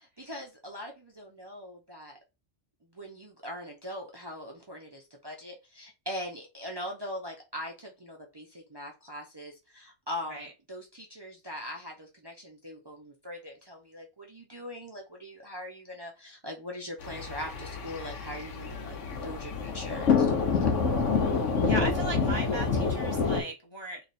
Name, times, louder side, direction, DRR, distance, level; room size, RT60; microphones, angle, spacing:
voice 1, 0.2-2.2 2.9-20.3, left 1 dB, 25° right, 0.6 m, -41 dB
sound 1, 17.0-23.4, left 5 dB, 90° left, 1.1 m, -27 dB
voice 2, 21.6-24.0, right 2 dB, 30° left, 0.6 m, -37 dB
3.3 x 2.5 x 4.1 m
omnidirectional pair, 1.2 m